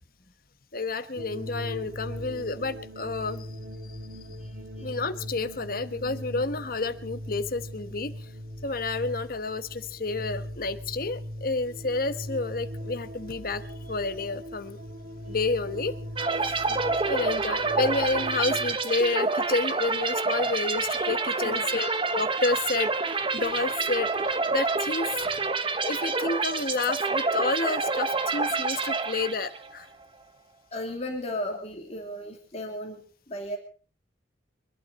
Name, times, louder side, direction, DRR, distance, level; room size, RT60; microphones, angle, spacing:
voice 1, 0.7-3.5 3.9-4.0 4.8-8.3 8.6-14.8 15.3-15.9 17.0-21.9 22.1-25.1 25.8-29.9, left 3 dB, 55° left, 11 dB, 1.2 m, -30 dB
sound 1, 1.2-18.7, equal, 75° right, 2.9 m, -40 dB
voice 2, 4.4-5.0 16.7-17.1 21.4-22.0 30.7-33.6, left 1 dB, 35° left, 2 dB, 3.0 m, -36 dB
sound 2, 16.2-29.7, right 4 dB, 30° right, 1.0 m, -28 dB
24.5 x 12.0 x 4.2 m, 0.39 s
head